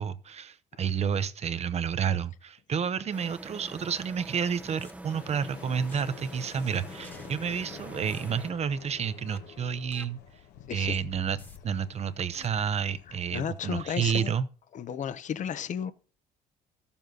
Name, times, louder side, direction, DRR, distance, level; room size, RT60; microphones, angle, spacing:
voice 1, 0.0-10.2 10.7-11.4 11.6-14.5, right 7 dB, 40° right, 0.8 m, -30 dB
sound 1, 3.1-8.5, right 2 dB, 10° right, 0.8 m, -46 dB
sound 2, 3.7-3.8 4.8-4.9 5.9-6.0 7.0-7.3 8.1-8.3 9.3-9.4 9.9-10.0 11.4-11.6 12.3-12.5, left 1 dB, 10° left, 1.5 m, -50 dB
sound 3, 5.0-13.9, left 9 dB, 75° left, 1.3 m, -49 dB
voice 2, 13.1-14.3 14.7-15.9, left 8 dB, 45° left, 0.8 m, -33 dB
13.5 x 7.1 x 3.9 m
cardioid pair, 110°, 17 cm